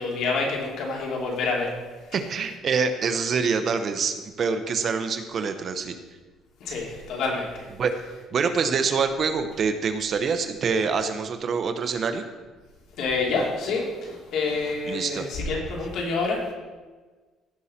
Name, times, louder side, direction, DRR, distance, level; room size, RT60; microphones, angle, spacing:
voice 1, 0.0-1.7 2.1-2.2 6.6-7.7 13.0-16.5, left 3 dB, 65° left, -1 dB, 2.8 m, -27 dB
voice 2, 2.1-5.9 7.8-7.9 8.3-12.2 14.9-15.3, right 5 dB, 40° right, 8 dB, 0.9 m, -25 dB
16.0 x 5.7 x 4.3 m, 1.3 s
cardioid pair, 130°, 0 cm